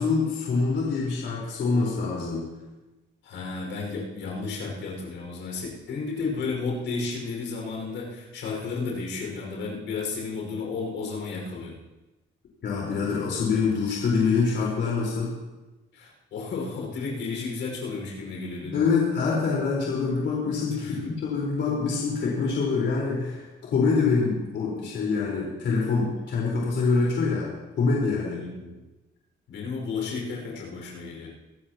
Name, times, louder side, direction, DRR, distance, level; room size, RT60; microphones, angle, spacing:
voice 1, 0.0-2.4 12.6-15.3 18.6-23.4 23.7-27.5 27.8-28.4, left 4 dB, 65° left, -5 dB, 4.3 m, -25 dB
voice 2, 3.2-11.7 15.9-18.8 20.8-21.2 28.3-28.9 29.5-31.3, left 4 dB, 85° left, -1 dB, 5.3 m, -33 dB
24.5 x 12.5 x 3.0 m, 1.1 s
cardioid pair, 120°, 20 cm